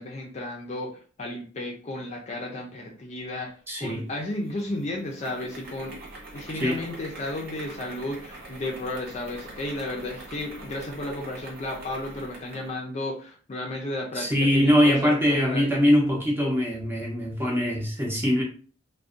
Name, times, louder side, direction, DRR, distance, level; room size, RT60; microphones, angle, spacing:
voice 1, 0.0-3.5 3.8-6.0 6.3-15.8, left 1 dB, 35° left, 0.4 m, -33 dB
voice 2, 3.7-4.0 6.6-6.8 14.1-18.4, equal, 10° right, 0.6 m, -22 dB
Electrical sewing machine, 4.0-12.8, right 2 dB, 50° right, 0.7 m, -44 dB
2.5 x 2.1 x 2.4 m
head